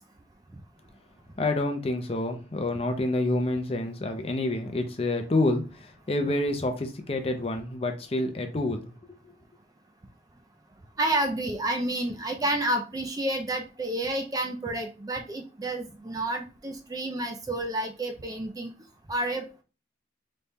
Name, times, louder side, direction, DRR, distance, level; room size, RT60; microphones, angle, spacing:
voice 1, 1.4-8.9, left 2 dB, 30° left, 0.5 m, -28 dB
voice 2, 11.0-18.7 19.1-19.5, right 1 dB, 20° right, 0.4 m, -30 dB
4.1 x 2.3 x 3.5 m
head